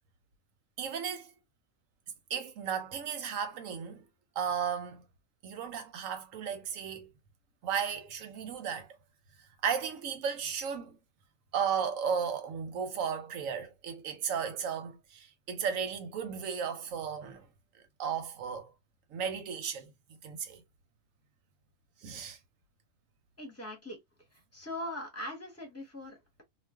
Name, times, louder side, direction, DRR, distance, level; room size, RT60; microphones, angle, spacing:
voice 1, 0.8-1.3 2.3-4.0 4.4-5.0 5.4-7.1 7.6-8.9 9.6-11.0 11.5-17.5 17.7-18.7 19.1-19.9 20.2-20.6 22.0-22.4, right 7 dB, 85° right, 1.2 m, -34 dB
voice 2, 23.4-24.0 24.5-26.4, left 1 dB, 10° left, 1.1 m, -41 dB
2.4 x 2.4 x 3.4 m
omnidirectional pair, 1.3 m